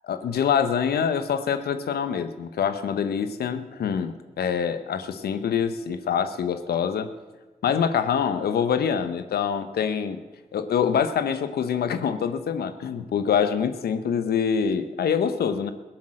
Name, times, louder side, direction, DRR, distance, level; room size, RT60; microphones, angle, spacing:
voice 1, 0.0-7.1 7.6-10.2 10.5-15.7, left 7 dB, 85° left, 11 dB, 1.0 m, -25 dB
16.0 x 10.5 x 7.6 m, 1.2 s
supercardioid pair, 45°, 16 cm